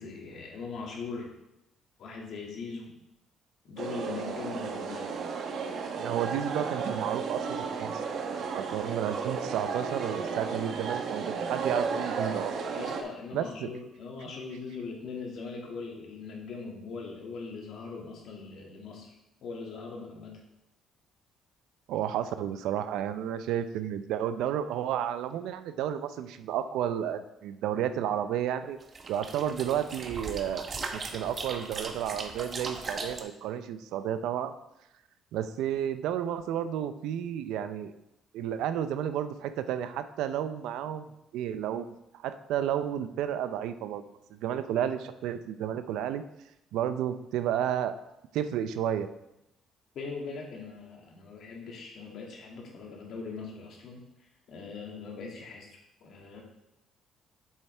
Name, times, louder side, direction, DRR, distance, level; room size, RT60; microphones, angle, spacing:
voice 1, 0.0-1.3 2.0-2.9 3.6-5.1 12.7-19.1 19.4-20.4 49.9-54.0 54.5-56.4, left 4 dB, 60° left, -1 dB, 2.1 m, -40 dB
sound 1, 3.8-13.0, right 5 dB, 60° right, 1.1 m, -33 dB
voice 2, 6.0-12.5 13.3-13.7 21.9-28.8 29.1-34.5 35.3-37.9 38.3-44.0 44.3-46.2 46.7-48.0 48.3-49.1, right 10 dB, 85° right, 11 dB, 0.5 m, -32 dB
sound 2, 28.8-33.2, right 4 dB, 35° right, 0.9 m, -38 dB
8.1 x 7.4 x 3.4 m, 0.87 s
cardioid pair, 120°, 0 cm